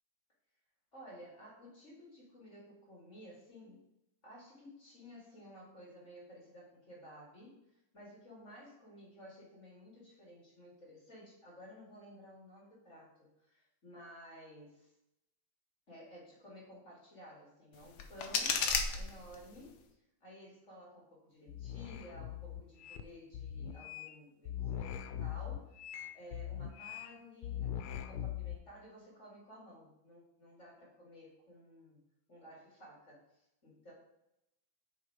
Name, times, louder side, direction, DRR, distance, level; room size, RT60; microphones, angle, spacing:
voice 1, 0.9-3.8 4.2-14.9 15.9-18.6 18.9-19.8 20.2-32.0 32.3-33.9, equal, 35° left, -6 dB, 2.6 m, -54 dB
sound 1, 17.7-19.7, left 5 dB, 60° left, 1.2 m, -35 dB
sound 2, 21.5-23.0 23.3-24.1 24.5-27.1 27.4-28.6, left 10 dB, 90° left, 1.5 m, -41 dB
6.4 x 4.6 x 4.5 m, 0.86 s
omnidirectional pair, 2.3 m